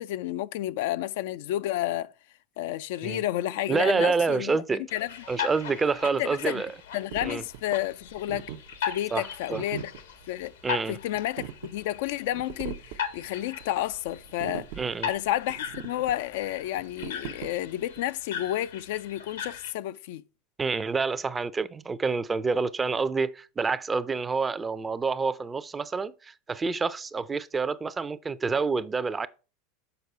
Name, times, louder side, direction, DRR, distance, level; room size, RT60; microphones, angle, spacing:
voice 1, 0.0-2.1 2.6-4.6 4.9-5.1 6.2-6.6 6.9-8.5 8.8-9.9 10.3-10.5 10.9-14.7 15.1-20.2, left 14 dB, 70° left, 0.4 m, -31 dB
voice 2, 3.7-4.9 5.3-6.7 7.2-7.4 9.1-9.6 10.6-11.0 14.8-15.1 20.6-29.3, right 4 dB, 20° right, 0.5 m, -28 dB
sound 1, 4.9-19.7, left 8 dB, 85° left, 1.2 m, -39 dB
sound 2, 7.1-18.1, right 11 dB, 65° right, 0.6 m, -42 dB
6.8 x 4.6 x 4.5 m
hypercardioid pair, 100°, 0 cm